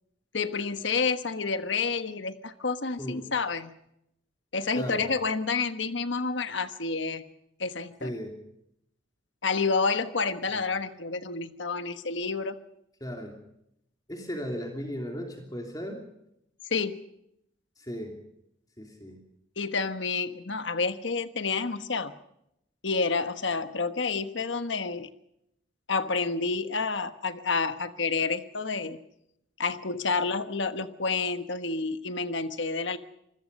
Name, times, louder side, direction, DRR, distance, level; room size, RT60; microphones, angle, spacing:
voice 1, 0.3-3.8 4.5-7.2 7.6-8.1 9.4-12.5 16.7-17.0 19.6-22.1 22.8-25.1 25.9-29.0 29.6-33.0, left 4 dB, 65° left, 10 dB, 1.3 m, -29 dB
voice 2, 4.7-5.1 8.0-8.4 13.0-13.3 14.1-16.0 17.8-18.2 18.8-19.2, equal, 20° left, 3 dB, 2.9 m, -36 dB
27.0 x 21.0 x 5.4 m, 0.79 s
head